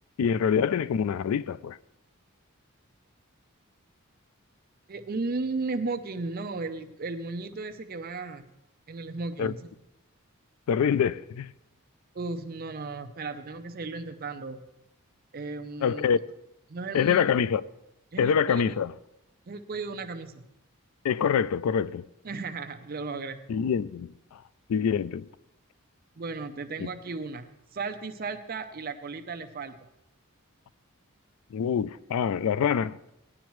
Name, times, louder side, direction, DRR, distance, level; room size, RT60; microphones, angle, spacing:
voice 1, 0.2-1.8 9.4-9.5 10.7-11.5 15.8-16.2 16.9-17.6 18.2-18.9 21.0-22.0 23.5-24.4 24.7-25.3 26.8-26.9 31.5-32.9, left 7 dB, 85° left, 0.3 m, -25 dB
voice 2, 4.9-8.5 8.9-9.6 12.1-14.6 15.3-16.1 16.7-17.2 18.1-18.8 19.5-20.4 22.2-23.4 26.2-27.5 27.7-29.8, right 3 dB, 45° right, 0.5 m, -35 dB
17.0 x 10.0 x 3.1 m
head